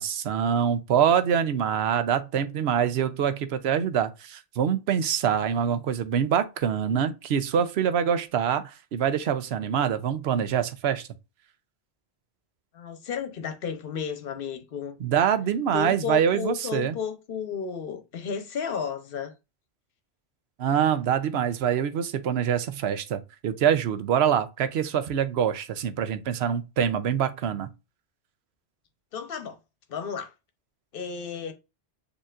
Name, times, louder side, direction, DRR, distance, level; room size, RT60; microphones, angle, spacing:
voice 1, 0.0-11.1 15.0-16.9 20.6-27.7, right 8 dB, 75° right, 0.9 m, -25 dB
voice 2, 12.7-15.0 15.7-19.3 29.1-29.6 29.9-30.3 30.9-31.5, left 7 dB, 60° left, 1.0 m, -33 dB
6.7 x 2.9 x 2.4 m
omnidirectional pair, 1.1 m